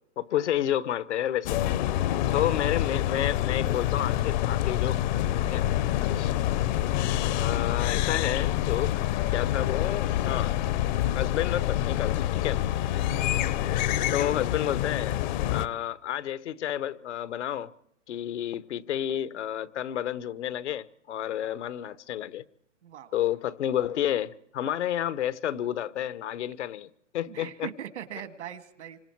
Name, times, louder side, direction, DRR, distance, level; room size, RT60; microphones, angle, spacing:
voice 1, 0.2-1.7 2.3-5.0 5.4-5.6 6.2-6.3 7.3-8.9 9.3-10.5 11.1-12.6 14.1-15.2 15.5-17.7 18.1-22.4 23.1-26.9 27.1-27.7, left 11 dB, 70° left, 1.0 m, -30 dB
sound 1, 1.5-15.7, left 13 dB, 40° left, 0.8 m, -27 dB
voice 2, 2.0-2.6 5.4-5.8 13.1-13.4 22.8-23.2 27.3-29.0, right 10 dB, 75° right, 1.9 m, -42 dB
27.5 x 25.5 x 4.6 m
hypercardioid pair, 145°, 36 cm